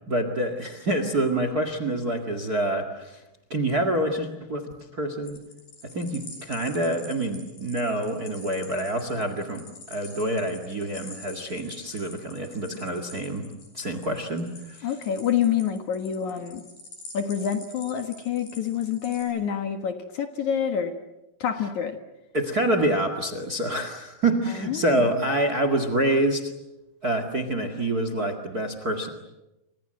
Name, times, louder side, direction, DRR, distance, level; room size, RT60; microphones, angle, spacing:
voice 1, 0.1-3.2 3.5-5.4 5.9-9.6 9.9-13.5 13.7-14.9 22.3-26.5 27.0-29.1, right 1 dB, 35° right, 9 dB, 1.8 m, -27 dB
sound 1, 5.2-19.2, left 3 dB, 80° left, 7.8 m, -46 dB
voice 2, 14.8-16.6 17.1-20.9 21.4-22.0 24.5-25.1, left 8 dB, 60° left, 7 dB, 2.6 m, -27 dB
29.0 x 26.0 x 7.7 m, 0.97 s
omnidirectional pair, 4.4 m